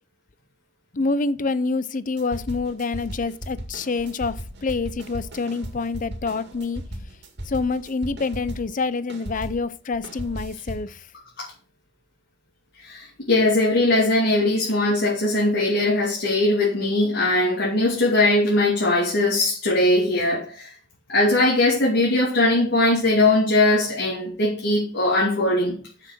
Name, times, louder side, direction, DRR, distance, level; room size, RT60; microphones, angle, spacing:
voice 1, 0.9-6.8 7.5-11.0, left 3 dB, 45° left, 0.6 m, -27 dB
sound 1, 2.2-8.8 9.1-10.9, equal, 65° right, 2.0 m, -36 dB
voice 2, 12.8-20.7 21.1-25.8, left 2 dB, 65° left, 2.9 m, -20 dB
7.0 x 6.7 x 6.0 m
head